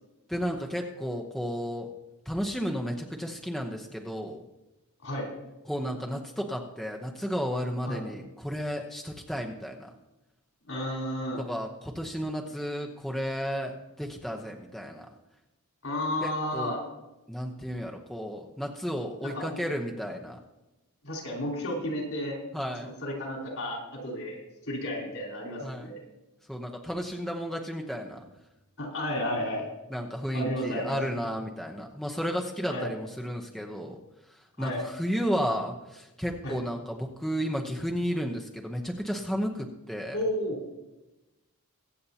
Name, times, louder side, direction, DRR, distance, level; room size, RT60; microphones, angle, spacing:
voice 1, 0.3-1.9 2.3-4.4 5.7-9.9 11.4-15.1 16.2-16.8 17.3-20.4 22.5-22.9 25.6-26.0 26.5-28.2 29.9-34.0 34.3-40.2, equal, ahead, 0 dB, 0.9 m, -33 dB
voice 2, 10.7-11.4 15.8-16.8 19.2-19.6 21.0-22.4 22.8-24.4 24.7-26.0 28.8-29.7 30.3-31.0 32.7-32.9 34.6-34.8 36.4-36.5 40.1-40.6, left 1 dB, 65° left, -1 dB, 4.6 m, -32 dB
23.5 x 8.4 x 2.9 m, 0.99 s
head